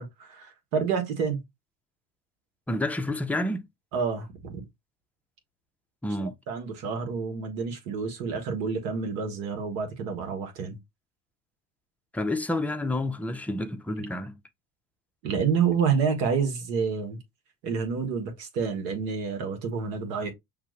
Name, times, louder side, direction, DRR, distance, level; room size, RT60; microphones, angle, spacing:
voice 1, 0.0-1.4 3.9-4.6 6.2-10.8 15.2-17.2 17.6-20.3, right 6 dB, 85° right, 1.7 m, -28 dB
voice 2, 2.7-3.7 6.0-6.3 12.1-14.4, left 1 dB, 5° left, 0.5 m, -29 dB
5.7 x 2.5 x 3.2 m
supercardioid pair, 85°, 48 cm